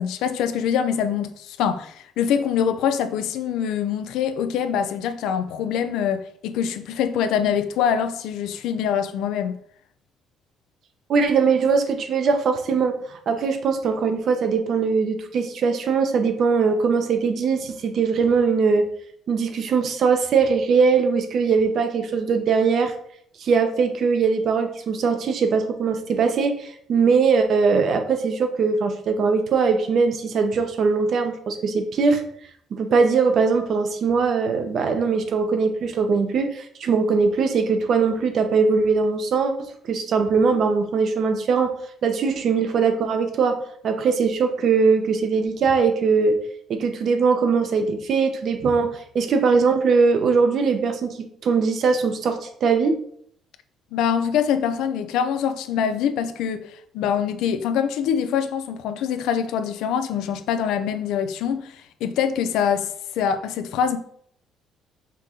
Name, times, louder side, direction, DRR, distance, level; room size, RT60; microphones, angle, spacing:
voice 1, 0.0-9.6 53.9-64.0, left 8 dB, 85° left, 0.4 m, -24 dB
voice 2, 11.1-18.9 19.3-22.9 23.4-32.2 32.7-41.7 42.0-43.6 43.8-46.4 46.7-53.0, right 5 dB, 60° right, 0.7 m, -21 dB
5.1 x 2.7 x 3.8 m
cardioid pair, 90°, 0 cm